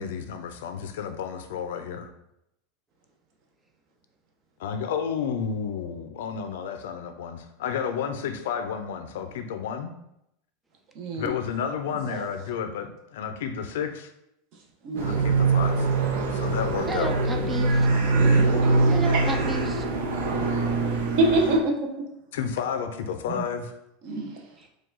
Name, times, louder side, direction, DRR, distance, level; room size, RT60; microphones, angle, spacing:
voice 1, 0.0-2.1 4.6-9.9 11.1-14.1 15.0-16.0 16.3-17.2 22.3-23.7, left 7 dB, 80° left, 8 dB, 0.5 m, -31 dB
voice 2, 11.0-11.3 12.1-12.2 14.8-15.1 17.8-18.5 19.1-19.2 21.2-21.9 23.3-23.4 24.0-24.3, right 2 dB, 45° right, 2 dB, 0.7 m, -25 dB
sound 1, 15.0-21.6, right 3 dB, 90° right, 0.7 m, -23 dB
voice 3, 16.9-17.9 18.9-19.9 24.6-24.7, right 3 dB, 10° right, 4 dB, 0.3 m, -32 dB
4.7 x 2.3 x 3.8 m, 0.81 s
supercardioid pair, 170°, 0 cm